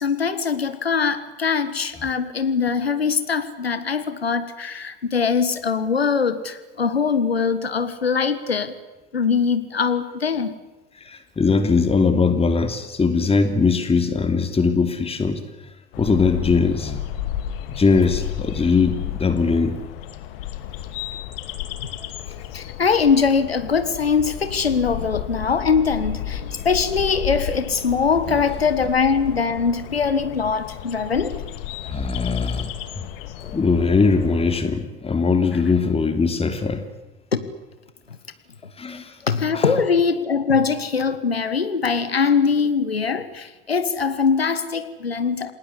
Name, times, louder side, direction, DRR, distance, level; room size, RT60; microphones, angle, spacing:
voice 1, 0.0-8.8 9.1-10.5 22.5-31.4 33.4-33.6 37.3-37.4 38.6-45.5, left 5 dB, 90° left, 11 dB, 1.6 m, -22 dB
voice 2, 11.0-15.4 16.0-17.0 17.7-19.7 24.9-25.1 28.3-28.4 31.8-32.7 33.0-33.1 33.5-36.8 38.8-39.2 39.5-39.7, left 4 dB, 20° left, 8 dB, 2.9 m, -20 dB
sound 1, 15.9-34.6, left 11 dB, 65° left, 2.3 m, -33 dB
29.0 x 19.5 x 8.4 m, 1.1 s
figure-of-eight pair, 70°, 30 cm